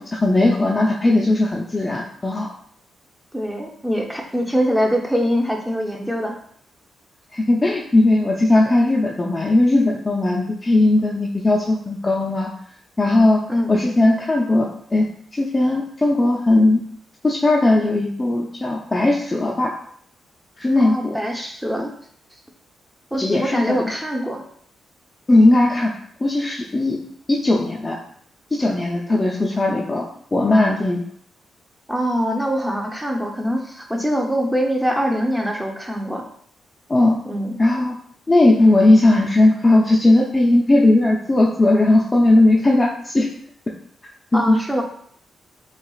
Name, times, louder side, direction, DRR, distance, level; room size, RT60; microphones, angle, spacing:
voice 1, 0.0-2.5 7.3-12.5 13.0-13.4 13.7-15.1 15.3-16.8 17.2-19.7 20.6-21.2 23.2-23.9 25.3-25.9 26.2-27.0 27.3-28.0 28.5-31.0 36.9-37.2 37.6-38.0 38.3-43.3 44.3-44.6, left 2 dB, 25° left, -3 dB, 0.6 m, -17 dB
voice 2, 3.3-6.4 13.5-13.8 20.8-21.9 23.1-24.4 31.9-36.3 37.2-37.6 44.3-44.8, equal, 5° right, 1 dB, 0.9 m, -23 dB
6.6 x 2.4 x 2.4 m, 0.63 s
supercardioid pair, 60°, 0 cm